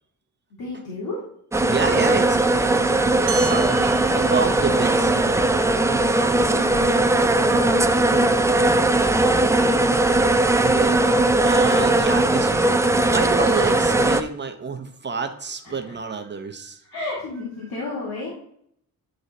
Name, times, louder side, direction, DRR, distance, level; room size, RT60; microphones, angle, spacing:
voice 1, 0.6-1.2 6.3-8.3 15.6-15.9 16.9-18.3, left 2 dB, 80° left, -5 dB, 2.1 m, -32 dB
sound 1, 1.5-14.2, right 2 dB, 10° right, 0.3 m, -19 dB
voice 2, 1.6-2.9 3.3-5.5 10.5-11.0 11.4-12.7 13.1-16.8, right 5 dB, 30° right, 7 dB, 0.7 m, -29 dB
sound 2, 3.3-8.1, right 5 dB, 65° right, 1.4 m, -38 dB
10.0 x 3.9 x 4.1 m, 0.67 s
wide cardioid pair, 155°, 36 cm